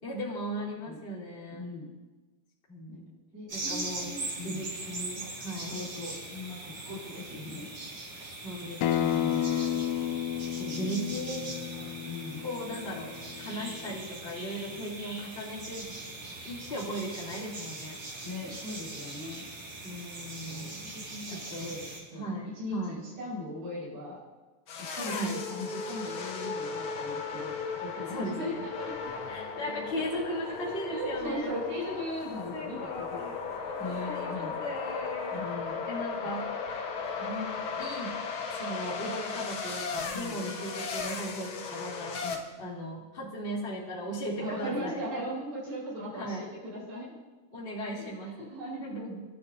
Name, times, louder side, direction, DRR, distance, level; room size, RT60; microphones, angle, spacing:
voice 1, 0.0-1.6 2.7-3.0 3.5-4.1 4.4-5.8 8.4-10.0 10.6-11.5 12.4-15.8 16.4-18.0 19.8-20.8 21.3-21.7 22.1-23.0 25.1-25.4 28.1-28.6 29.3-31.5 32.5-33.3 33.8-35.4 35.9-36.5 37.2-37.5 37.8-38.1 38.5-42.2 42.6-45.0 46.1-46.4 47.5-48.5 48.8-49.3, equal, 15° left, -6 dB, 2.8 m, -37 dB
voice 2, 1.5-1.9 2.9-3.0 3.3-4.6 5.7-7.7 10.6-10.9 12.0-12.4 18.2-19.4 20.4-21.9 22.1-24.2 24.9-27.5 27.8-29.1 29.9-33.2 33.8-34.5 35.3-35.8 40.1-40.4 42.2-42.4 44.4-47.1 48.2-49.1, left 1 dB, 80° right, -7 dB, 6.5 m, -39 dB
sound 1, 3.5-22.0, right 2 dB, 45° right, 6.5 m, -41 dB
Acoustic guitar, 8.8-14.0, left 11 dB, 80° left, 2.2 m, -32 dB
sound 2, 24.7-42.4, left 5 dB, 60° left, 1.3 m, -36 dB
29.5 x 13.0 x 2.8 m, 1.2 s
omnidirectional pair, 4.0 m